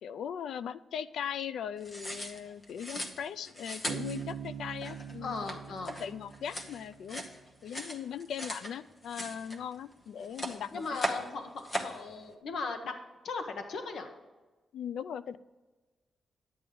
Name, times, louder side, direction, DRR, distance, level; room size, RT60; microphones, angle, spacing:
voice 1, 0.0-5.4 5.8-7.2 7.6-11.0 14.7-15.4, left 8 dB, 90° left, 16 dB, 0.3 m, -39 dB
sound 1, 1.8-8.7 9.0-9.9 10.2-11.3 11.6-12.0, equal, 30° left, 1.0 m, -39 dB
Bass guitar, 3.9-7.4, right 8 dB, 70° right, 0.6 m, -43 dB
voice 2, 5.2-6.0 10.7-12.9 13.2-14.1, left 4 dB, 65° left, 6 dB, 1.0 m, -37 dB
10.5 x 8.6 x 3.8 m, 1.2 s
wide cardioid pair, 160°, 0 cm